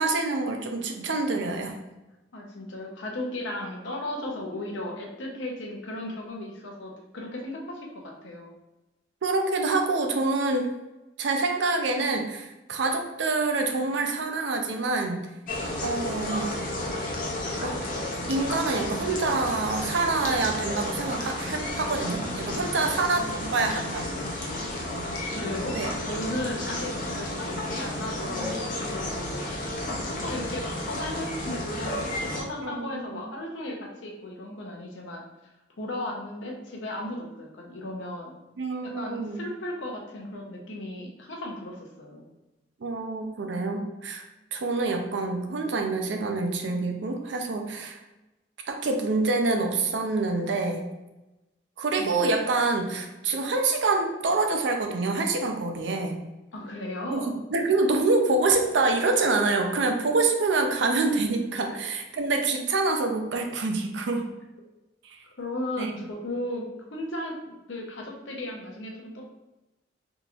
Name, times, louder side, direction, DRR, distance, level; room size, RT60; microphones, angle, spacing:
voice 1, 0.0-1.8 9.2-10.7 11.2-15.3 15.8-16.6 17.6-17.7 18.3-23.2 23.5-24.0 25.7-25.9 32.6-33.2 38.6-39.5 42.8-44.2 44.5-48.0 48.7-50.8 51.8-56.1 57.1-64.2 65.0-65.2 65.8-65.9, right 3 dB, 75° right, 4 dB, 0.5 m, -26 dB
voice 2, 2.3-8.5 23.1-23.8 25.3-25.8 26.0-35.2 35.8-38.3 38.8-42.2 52.0-52.3 56.5-57.3 61.7-61.8 65.4-66.6 66.9-69.2, left 1 dB, 80° left, 0 dB, 0.7 m, -36 dB
sound 1, 15.5-32.4, left 1 dB, 45° left, 0.6 m, -32 dB
3.6 x 2.9 x 2.4 m, 1.0 s
head